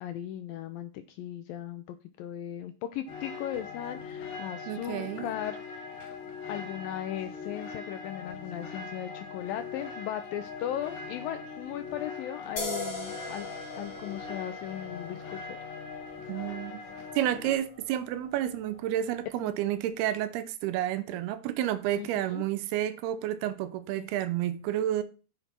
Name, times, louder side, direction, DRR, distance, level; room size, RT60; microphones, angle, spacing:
voice 1, 0.0-6.0 6.5-13.5 13.8-15.6 19.4-19.5 21.9-22.4 24.0-24.1, left 11 dB, 85° left, 2.1 m, -37 dB
sound 1, 3.1-17.5, left 5 dB, 60° left, 3.7 m, -41 dB
voice 2, 4.7-5.3 16.3-16.8 17.2-25.0, right 12 dB, 80° right, 2.6 m, -30 dB
sound 2, 12.6-19.9, left 2 dB, 35° left, 1.4 m, -42 dB
9.7 x 8.0 x 4.4 m
omnidirectional pair, 4.7 m